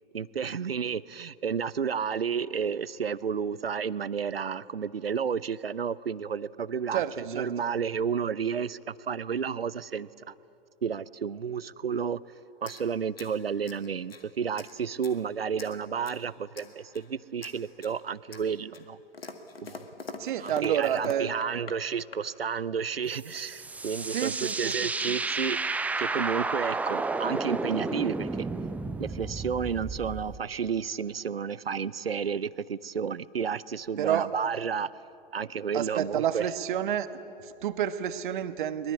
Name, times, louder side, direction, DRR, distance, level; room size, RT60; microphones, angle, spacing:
voice 1, 0.1-10.3 10.8-12.2 12.6-19.0 19.6-19.8 20.4-25.6 26.0-28.5 29.0-34.9 35.3-36.4, right 6 dB, 85° right, 19 dB, 0.7 m, -31 dB
voice 2, 6.9-7.5 20.2-21.4 24.1-24.9 34.0-34.3 35.7-37.1 37.4-38.9, right 10 dB, 55° right, 11 dB, 1.3 m, -29 dB
sound 1, 12.6-14.3 14.6-15.2 15.6-16.3 16.5-17.1 17.4-18.0 18.3-21.8 22.1-22.5 23.3-23.4 23.6-24.8, left 3 dB, 80° left, 2.0 m, -45 dB
sound 2, 23.2-30.4, right 3 dB, 5° right, 0.6 m, -32 dB
23.0 x 22.0 x 8.4 m, 2.7 s
figure-of-eight pair, 110°, 29 cm